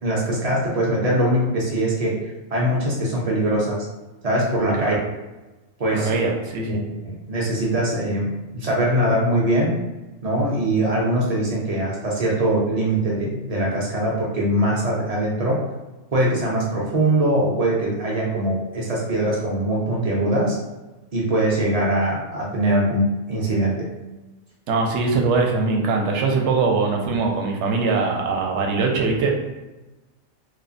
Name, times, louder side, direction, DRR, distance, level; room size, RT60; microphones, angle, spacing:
voice 1, 0.0-2.2 2.5-3.9 4.2-5.0 5.8-6.1 6.7-6.8 7.0-9.7 10.2-15.6 16.1-20.6 21.1-23.9, right 1 dB, 50° right, -4 dB, 0.5 m, -22 dB
voice 2, 5.9-6.8 24.7-29.3, right 4 dB, 70° right, 1 dB, 0.8 m, -22 dB
3.0 x 2.0 x 2.5 m, 1.1 s
omnidirectional pair, 1.3 m